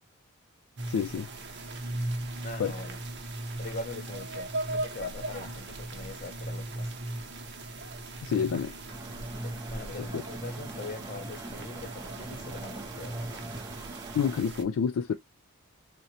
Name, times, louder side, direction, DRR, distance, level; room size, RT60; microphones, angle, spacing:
sound 1, 0.8-14.6, right 1 dB, 50° right, 0.8 m, -38 dB
voice 1, 0.9-1.3 2.6-2.7 8.2-8.7 14.1-15.2, left 7 dB, 65° left, 0.3 m, -28 dB
voice 2, 2.4-3.0 3.6-6.9 9.4-13.4, left 2 dB, 40° left, 0.7 m, -42 dB
sound 2, 8.9-14.4, right 2 dB, 15° right, 0.4 m, -44 dB
3.8 x 2.1 x 2.8 m
head